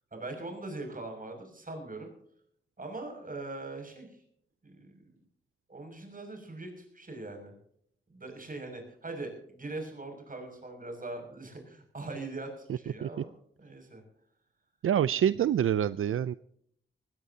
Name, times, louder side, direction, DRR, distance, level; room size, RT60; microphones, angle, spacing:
voice 1, 0.1-2.1 2.8-4.1 4.6-5.1 5.7-7.5 8.1-13.3 13.6-14.0, right 2 dB, 40° right, 5 dB, 6.4 m, -41 dB
voice 2, 14.8-16.3, right 9 dB, 80° right, 16 dB, 0.4 m, -26 dB
20.0 x 17.0 x 2.8 m, 0.66 s
cardioid pair, 75°, 21 cm